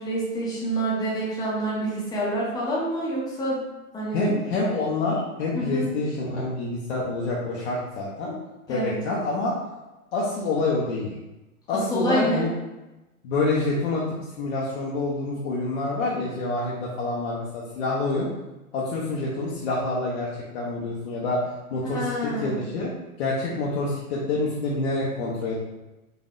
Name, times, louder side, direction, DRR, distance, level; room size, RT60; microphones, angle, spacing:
voice 1, 0.0-3.6 3.9-4.3 5.5-5.9 8.7-9.0 11.7-12.4 21.8-22.6, right 1 dB, 10° left, -6 dB, 0.8 m, -27 dB
voice 2, 4.1-8.4 8.7-9.5 10.1-11.1 11.7-12.5 13.2-18.3 18.7-20.3 20.5-22.9 23.2-25.5, left 2 dB, 45° left, -5 dB, 0.7 m, -27 dB
4.0 x 2.6 x 2.5 m, 1.0 s
hypercardioid pair, 120°, 45 cm